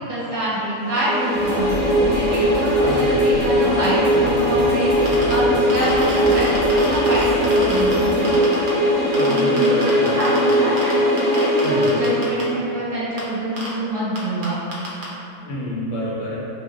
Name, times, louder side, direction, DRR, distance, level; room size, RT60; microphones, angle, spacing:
voice 1, 0.1-8.4 9.2-14.6, right 1 dB, 25° right, -13 dB, 1.3 m, -26 dB
sound 1, 0.8-12.7, equal, 5° left, 0.7 m, -19 dB
sound 2, 1.3-8.2, equal, 45° left, 0.6 m, -31 dB
voice 2, 2.8-3.4 9.1-10.1 11.6-11.9 15.5-16.4, equal, 65° left, -6 dB, 1.0 m, -28 dB
sound 3, 4.9-5.3 5.7-7.9 8.2-8.7 9.1-10.9 11.2-12.4 13.2-13.3 13.6-13.7 14.1-14.2 14.4-14.5 14.7-15.0, right 2 dB, 55° right, 0.6 m, -30 dB
2.5 x 2.2 x 3.6 m, 2.7 s
omnidirectional pair, 1.5 m